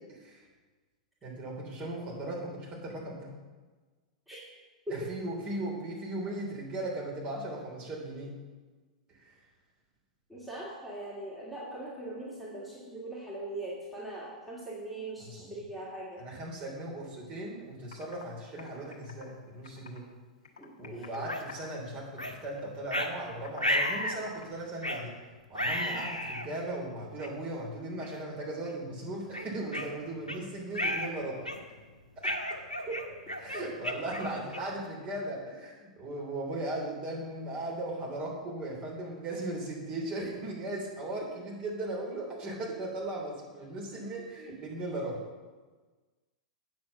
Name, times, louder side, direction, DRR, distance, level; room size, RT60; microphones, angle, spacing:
voice 1, 0.1-0.4 1.2-3.3 4.9-8.3 9.1-9.4 15.2-15.6 16.2-20.1 20.8-25.2 25.5-31.5 33.4-45.2, right 1 dB, 30° right, -3 dB, 3.3 m, -37 dB
voice 2, 10.3-16.2 20.6-21.3 25.9-26.1 32.9-33.0, right 2 dB, ahead, -8 dB, 2.4 m, -40 dB
Computer keyboard, 17.5-17.6 17.9-18.2 18.6-20.1 20.4-21.2 21.5-21.9 22.2-24.5, left 5 dB, 65° left, 1.3 m, -50 dB
sound 1, 21.3-21.4 22.2-22.4 22.9-23.1 23.6-24.2 24.8-25.1 25.5-26.5 27.2-27.3 28.0-28.2 28.6-28.8 29.3-30.4 30.7-31.1 31.4-31.8 32.2-34.8, left 1 dB, 90° left, 1.0 m, -33 dB
8.5 x 6.2 x 7.1 m, 1.3 s
figure-of-eight pair, 95°, 4 cm